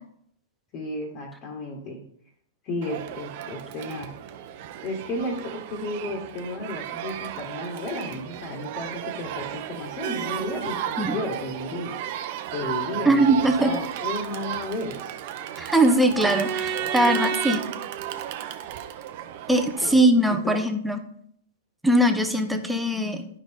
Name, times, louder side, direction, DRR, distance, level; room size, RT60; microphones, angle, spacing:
voice 1, 0.7-2.0 2.6-4.1 4.8-11.9 12.5-15.0 17.0-17.1 19.8-20.0 20.3-20.5, left 1 dB, 40° left, 0 dB, 1.9 m, -33 dB
Crowd, 2.8-19.9, right 10 dB, 50° right, 0.9 m, -33 dB
voice 2, 13.0-13.7 15.6-17.6 19.5-21.0 21.8-23.3, right 1 dB, 5° right, 6 dB, 1.0 m, -21 dB
11.5 x 5.1 x 3.7 m, 0.67 s
hypercardioid pair, 105°, 0 cm